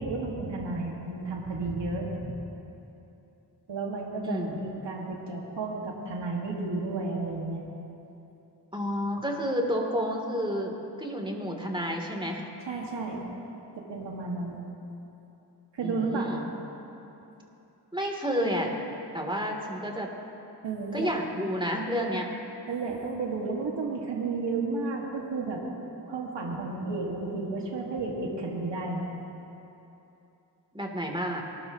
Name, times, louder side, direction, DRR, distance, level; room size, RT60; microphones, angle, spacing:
voice 1, 0.0-2.4 3.7-7.7 12.7-13.2 13.8-14.6 15.7-16.3 20.6-21.1 22.7-25.6 26.1-29.1, right 3 dB, 75° right, -2 dB, 2.0 m, -32 dB
voice 2, 4.2-4.6 8.7-10.7 11.0-12.4 15.8-16.5 17.9-18.7 19.1-20.1 20.9-22.3 30.7-31.4, equal, 10° right, 1 dB, 3.0 m, -30 dB
24.5 x 12.5 x 3.0 m, 2.9 s
cardioid pair, 40°, 43 cm